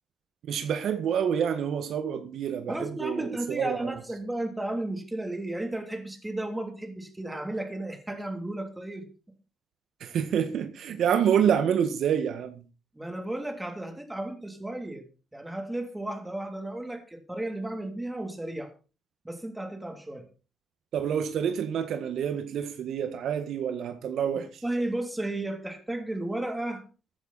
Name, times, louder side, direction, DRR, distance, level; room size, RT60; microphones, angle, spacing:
voice 1, 0.5-3.9 10.0-12.6 20.9-24.5, right 8 dB, 70° right, 1.6 m, -27 dB
voice 2, 2.7-9.1 10.9-11.0 12.9-15.0 15.3-18.7 19.2-20.2 24.3-26.8, right 1 dB, 10° right, 3.1 m, -34 dB
14.5 x 10.0 x 4.2 m
cardioid pair, 90°, 0 cm